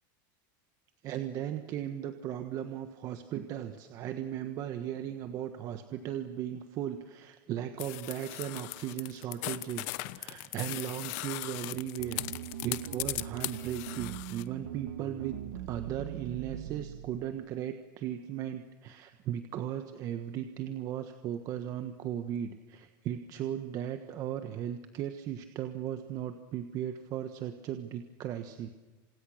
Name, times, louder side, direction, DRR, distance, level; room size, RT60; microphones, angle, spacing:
voice 1, 1.0-12.2 12.6-28.7, right 10 dB, 35° right, 8 dB, 1.4 m, -37 dB
sound 1, 7.8-14.4, left 20 dB, 55° left, 1.2 m, -38 dB
sound 2, 12.0-17.3, right 11 dB, 85° right, 2.4 m, -42 dB
29.5 x 27.5 x 6.5 m, 1.3 s
supercardioid pair, 165°, 11 cm